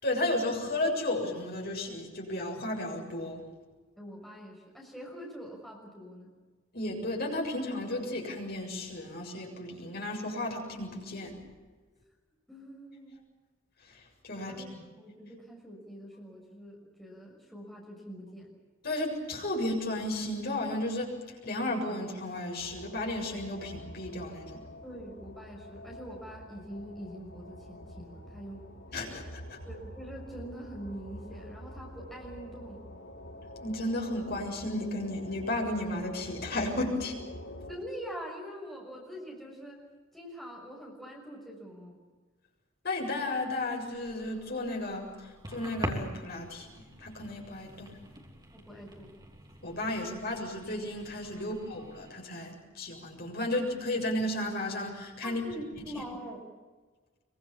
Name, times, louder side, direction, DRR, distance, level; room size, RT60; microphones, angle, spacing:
voice 1, 0.0-3.4 6.7-11.4 14.2-14.5 18.8-21.1 21.4-24.6 28.9-29.6 33.6-37.1 42.8-45.1 45.5-48.0 49.6-55.4 55.9-56.0, left 1 dB, 50° left, 0 dB, 7.3 m, -33 dB
voice 2, 4.0-6.3 11.9-12.0 12.5-13.2 14.3-18.5 24.8-28.7 29.6-32.8 37.7-39.8 40.1-42.0 48.5-49.2 51.4-51.5 55.2-56.6, equal, ahead, -3 dB, 6.2 m, -44 dB
sound 1, 22.6-37.8, left 1 dB, 75° left, 5.2 m, -47 dB
sound 2, 43.9-52.1, right 1 dB, 20° right, 3.0 m, -44 dB
25.0 x 24.0 x 7.3 m, 1.3 s
head